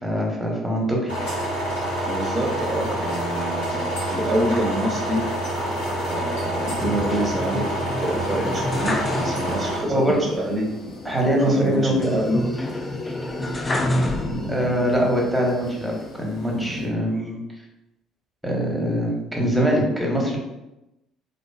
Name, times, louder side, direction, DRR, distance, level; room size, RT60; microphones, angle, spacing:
voice 1, 0.0-1.1 9.9-10.2 11.0-12.1 14.5-17.4 18.4-20.4, equal, 5° right, -1 dB, 0.8 m, -23 dB
sound 1, 1.1-9.8, right 1 dB, 85° left, 1.1 m, -27 dB
voice 2, 2.1-5.2 6.0-7.7 8.0-10.7 11.3-12.5, right 1 dB, 30° right, 0 dB, 0.5 m, -26 dB
sound 2, 4.1-16.9, left 1 dB, 65° left, 0.6 m, -38 dB
sound 3, 6.8-9.8 10.1-10.2 12.0-14.8 15.3-16.1, left 1 dB, 20° left, 0.4 m, -28 dB
2.5 x 2.3 x 2.3 m, 0.94 s
figure-of-eight pair, 55°, 0 cm